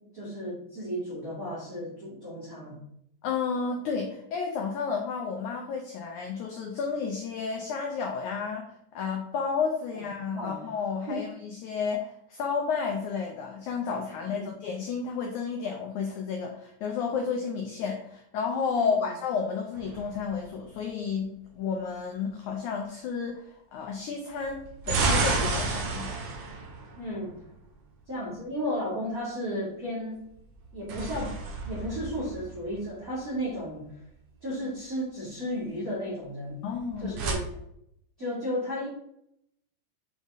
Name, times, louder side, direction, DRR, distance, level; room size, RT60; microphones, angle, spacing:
voice 1, 0.1-2.8 10.2-10.6 11.1-11.2 14.3-14.4 18.7-19.1 27.0-27.3 28.1-30.3 30.7-31.4 31.6-33.9 34.4-36.6 37.0-37.5 38.2-38.9, equal, 30° right, -8 dB, 1.7 m, -34 dB
voice 2, 3.2-23.4 23.7-24.6 24.9-26.2 36.6-37.1, left 5 dB, 85° left, 2 dB, 1.7 m, -31 dB
sound 1, 19.7-20.8 24.4-27.7 30.5-33.0 36.7-37.3, right 3 dB, 60° right, 2.5 m, -31 dB
8.8 x 4.0 x 3.6 m, 0.76 s
omnidirectional pair, 4.6 m